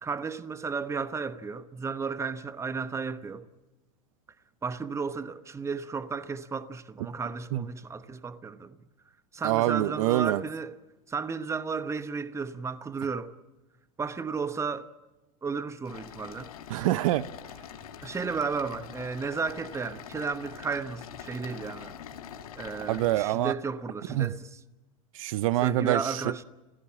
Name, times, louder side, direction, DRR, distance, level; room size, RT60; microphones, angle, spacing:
voice 1, 0.0-3.5 4.6-8.8 9.3-10.8 11.1-13.4 14.0-14.9 15.4-16.5 18.0-22.0 22.6-24.5 25.6-26.4, right 5 dB, 15° right, 1.0 m, -33 dB
voice 2, 9.4-10.4 16.7-17.3 22.9-23.5 24.1-24.3 25.1-26.3, right 15 dB, 70° right, 0.7 m, -26 dB
sound 1, 15.8-23.2, left 9 dB, 85° left, 2.0 m, -44 dB
28.5 x 16.0 x 7.4 m
hypercardioid pair, 110°, 18 cm